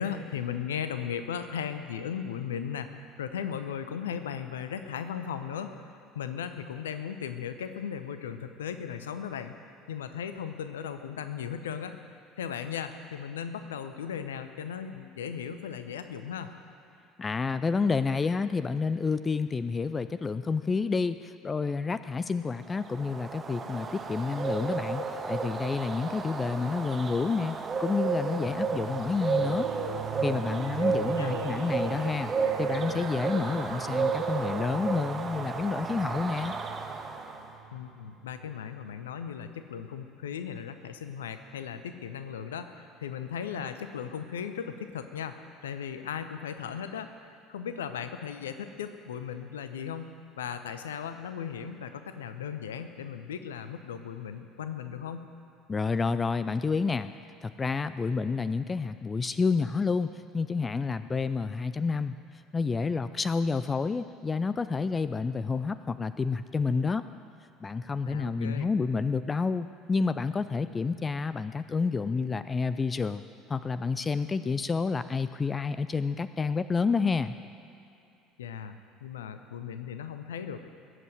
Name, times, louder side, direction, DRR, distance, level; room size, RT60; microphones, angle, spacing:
voice 1, 0.0-5.7 6.1-12.0 12.4-16.5 30.8-31.5 37.7-45.4 45.6-47.1 47.5-55.3 68.1-68.7 78.4-80.7, left 8 dB, 70° left, 10 dB, 0.8 m, -37 dB
voice 2, 17.2-29.7 30.2-32.3 32.6-36.5 55.7-57.1 57.4-62.2 62.5-67.0 67.6-73.2 73.5-77.4, left 4 dB, 25° left, 13 dB, 0.5 m, -29 dB
Bird, 22.8-37.5, right 4 dB, 30° right, 1.5 m, -32 dB
sound 1, 28.5-38.7, right 8 dB, 60° right, 1.3 m, -42 dB
21.5 x 8.2 x 7.9 m, 2.7 s
figure-of-eight pair, 60°, 0 cm